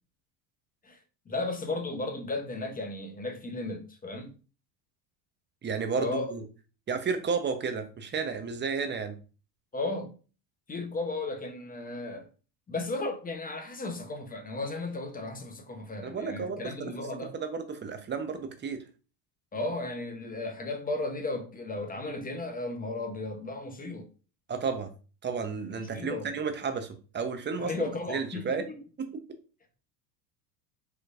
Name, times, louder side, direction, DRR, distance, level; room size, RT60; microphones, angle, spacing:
voice 1, 1.3-4.3 6.0-6.3 9.7-10.2 10.7-12.3 12.7-17.4 19.5-24.1 25.7-26.3 27.6-28.7, left 2 dB, 20° left, 0.8 m, -35 dB
voice 2, 5.6-6.4 6.9-9.1 16.0-16.9 17.3-18.8 24.5-24.9 25.2-28.7 29.0-29.1, right 5 dB, 25° right, 0.7 m, -32 dB
4.8 x 3.0 x 2.4 m
hypercardioid pair, 90°, 48 cm